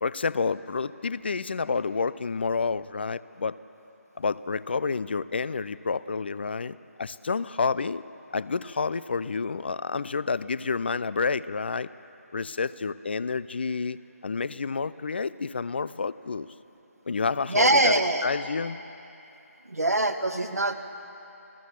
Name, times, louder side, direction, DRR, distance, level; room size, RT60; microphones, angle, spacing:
voice 1, 0.0-3.6 4.2-8.0 8.3-11.9 12.3-14.0 14.2-16.5 17.1-18.8, left 4 dB, 45° left, 17 dB, 0.5 m, -29 dB
voice 2, 17.5-18.3 19.7-20.7, right 2 dB, 75° right, 5 dB, 1.9 m, -23 dB
28.0 x 18.0 x 7.3 m, 2.9 s
figure-of-eight pair, 155°, 8 cm